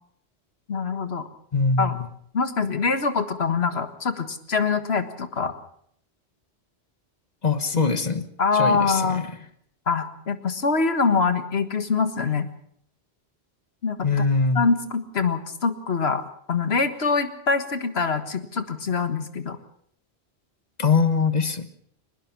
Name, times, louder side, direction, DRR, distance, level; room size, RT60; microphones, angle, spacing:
voice 1, 0.7-1.3 1.8-2.0 2.3-5.5 8.4-9.2 9.9-12.5 13.8-14.0 14.6-16.2 16.5-19.6, left 4 dB, 70° left, 9 dB, 1.8 m, -24 dB
voice 2, 1.5-2.1 7.4-8.3 8.5-9.3 14.0-14.7 20.8-21.7, left 4 dB, 40° left, 10 dB, 1.5 m, -22 dB
23.0 x 20.0 x 6.0 m, 0.66 s
omnidirectional pair, 1.1 m